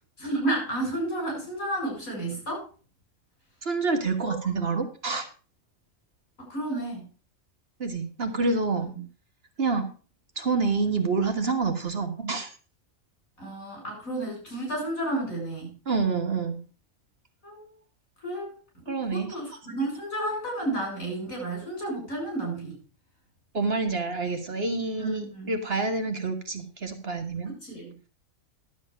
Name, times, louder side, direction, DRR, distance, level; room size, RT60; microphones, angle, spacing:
voice 1, 0.2-2.7 4.2-4.4 6.4-7.1 8.8-9.0 13.4-15.7 17.4-17.7 18.2-22.8 25.0-25.5 27.5-27.9, right 1 dB, 80° left, -1 dB, 8.2 m, -32 dB
voice 2, 3.6-5.3 7.8-8.9 9.6-9.9 10.4-12.5 15.9-16.6 18.9-19.3 23.5-27.5, right 4 dB, 50° right, 6 dB, 1.7 m, -27 dB
12.0 x 8.2 x 5.0 m, 0.36 s
omnidirectional pair, 1.4 m